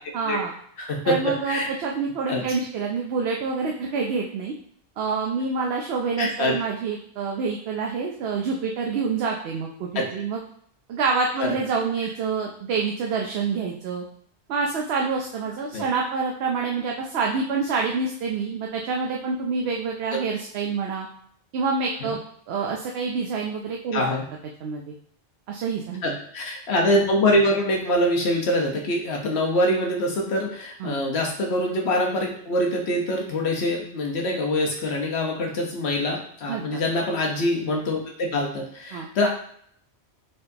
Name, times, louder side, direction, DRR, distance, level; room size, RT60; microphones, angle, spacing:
voice 1, 0.1-0.5 1.0-4.5 5.0-10.4 10.9-14.0 14.5-21.1 21.5-22.2 22.5-24.0 24.6-24.9 25.5-26.2 30.8-31.0 36.4-36.8 38.9-39.1, right 5 dB, 70° right, 0 dB, 0.8 m, -27 dB
voice 2, 0.8-1.7 2.3-2.4 6.2-6.5 9.9-10.0 11.4-11.5 15.7-15.8 23.9-24.2 26.0-39.3, left 1 dB, 70° left, 0 dB, 1.1 m, -24 dB
4.4 x 3.8 x 2.7 m, 0.64 s
omnidirectional pair, 1.2 m